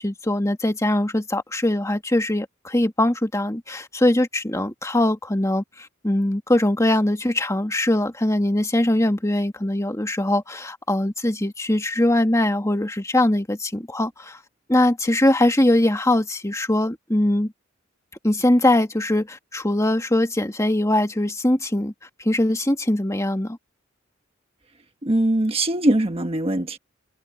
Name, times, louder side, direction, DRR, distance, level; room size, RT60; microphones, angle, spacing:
voice 1, 0.0-14.4 14.7-17.5 18.2-21.9 22.2-23.6, left 1 dB, 15° left, 2.0 m, -21 dB
voice 2, 25.0-26.8, right 1 dB, 30° right, 1.3 m, -21 dB
head